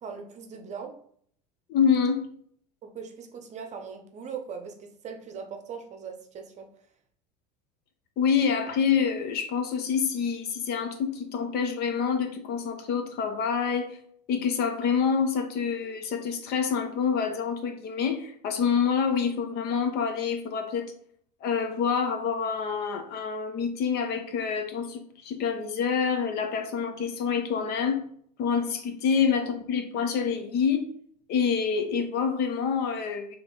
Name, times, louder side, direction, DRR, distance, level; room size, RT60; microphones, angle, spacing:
voice 1, 0.0-0.9 2.8-6.7 29.3-29.5, right 6 dB, 35° right, 4 dB, 0.8 m, -40 dB
voice 2, 1.7-2.3 8.2-14.0 14.3-20.9 21.4-28.0 28.4-30.9 31.3-33.4, left 6 dB, 50° left, 6 dB, 0.8 m, -27 dB
3.4 x 3.1 x 3.9 m, 0.62 s
hypercardioid pair, 90°, 20 cm